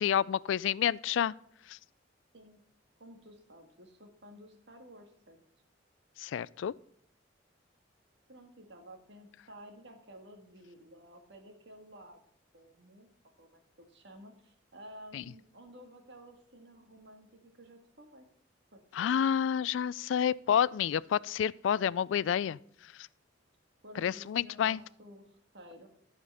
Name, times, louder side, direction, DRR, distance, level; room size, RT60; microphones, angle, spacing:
voice 1, 0.0-1.3 1.7-1.8 6.2-6.7 15.1-15.2 18.9-22.6 24.0-24.8, left 9 dB, 80° left, 0.3 m, -29 dB
voice 2, 3.0-5.4 8.3-12.2 12.5-13.1 13.4-18.3 18.7-19.3 23.8-25.9, equal, 65° right, 1.8 m, -53 dB
15.0 x 5.1 x 5.5 m
head